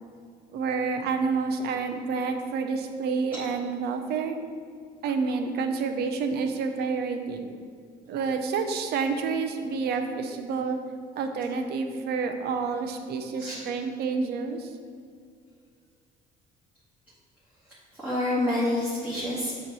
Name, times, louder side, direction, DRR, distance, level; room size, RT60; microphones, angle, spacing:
voice 1, 0.5-4.4 5.0-7.5 8.1-10.8 11.2-14.7, right 5 dB, 70° right, 6 dB, 0.7 m, -29 dB
voice 2, 17.6-19.5, left 1 dB, 10° right, -9 dB, 1.6 m, -28 dB
7.1 x 3.2 x 6.1 m, 2.2 s
cardioid pair, 110°, 17 cm